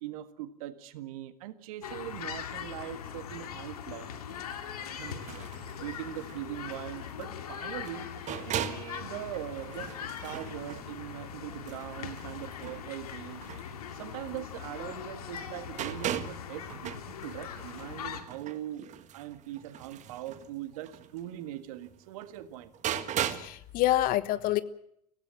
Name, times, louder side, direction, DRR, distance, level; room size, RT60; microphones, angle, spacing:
voice 1, 0.0-4.1 5.0-8.1 8.4-13.5 13.9-18.9 19.1-22.7, right 13 dB, 65° right, 1.8 m, -41 dB
sound 1, 1.8-18.2, left 8 dB, 75° left, 2.3 m, -41 dB
sound 2, 4.3-15.0 15.3-23.6 23.9-24.0, right 10 dB, 40° right, 1.7 m, -40 dB
voice 2, 23.3-24.6, left 15 dB, 50° left, 1.2 m, -27 dB
24.5 x 16.5 x 7.5 m
hypercardioid pair, 85°, 19 cm